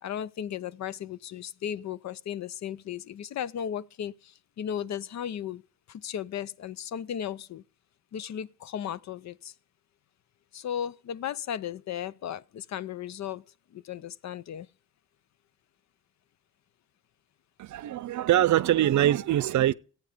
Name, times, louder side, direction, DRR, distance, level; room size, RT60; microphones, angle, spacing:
voice 1, 0.0-5.6 5.9-7.6 8.1-9.5 10.5-13.4 13.7-14.7, left 9 dB, 55° left, 0.6 m, -35 dB
voice 2, 17.6-19.7, right 13 dB, 60° right, 0.6 m, -23 dB
15.0 x 8.9 x 5.1 m
cardioid pair, 120°, 33 cm